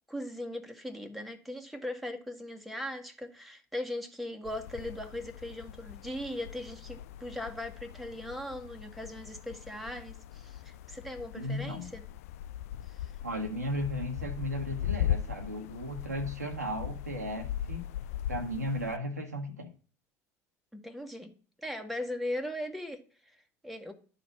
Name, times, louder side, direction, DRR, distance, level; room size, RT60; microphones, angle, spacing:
voice 1, 0.1-12.0 12.8-13.1 20.7-21.3 21.6-23.9, left 1 dB, ahead, 4 dB, 1.5 m, -39 dB
sound 1, 4.4-19.0, left 11 dB, 65° left, 0.4 m, -39 dB
voice 2, 11.3-11.9 13.2-17.8 18.3-19.7, equal, 85° right, 3 dB, 1.3 m, -35 dB
11.0 x 4.0 x 6.0 m, 0.38 s
figure-of-eight pair, 65°, 8 cm